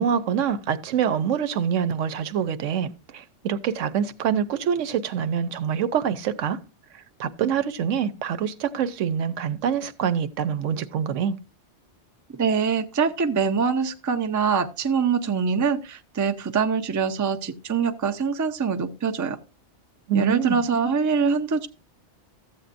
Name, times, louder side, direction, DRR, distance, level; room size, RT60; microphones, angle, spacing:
voice 1, 0.0-6.6 7.2-11.4 20.1-20.6, right 8 dB, 85° right, 1.0 m, -25 dB
voice 2, 12.3-19.4 20.1-21.7, right 6 dB, 30° right, 0.3 m, -24 dB
14.0 x 8.1 x 2.5 m
omnidirectional pair, 1.2 m